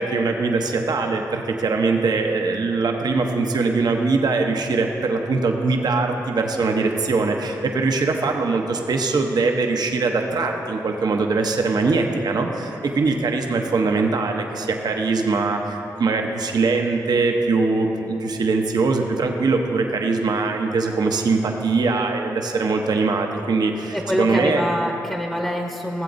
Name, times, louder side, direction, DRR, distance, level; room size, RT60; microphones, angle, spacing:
voice 1, 0.0-24.6, right 3 dB, 70° right, 3 dB, 0.8 m, -22 dB
voice 2, 23.9-26.0, equal, 10° left, 1 dB, 0.9 m, -25 dB
16.5 x 7.7 x 2.6 m, 3.0 s
cardioid pair, 45°, 7 cm